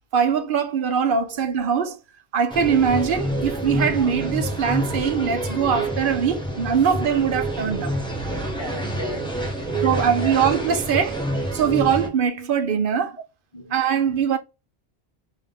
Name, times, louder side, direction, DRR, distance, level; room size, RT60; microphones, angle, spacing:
voice 1, 0.1-2.0 2.3-7.9 9.8-11.2 11.5-13.2 13.7-14.4, right 7 dB, 60° right, 0.7 m, -22 dB
sound 1, 2.5-12.1, right 1 dB, 5° left, 0.9 m, -27 dB
voice 2, 8.6-10.3 13.5-13.7, right 2 dB, 30° left, 1.1 m, -36 dB
3.5 x 2.7 x 3.5 m
omnidirectional pair, 1.1 m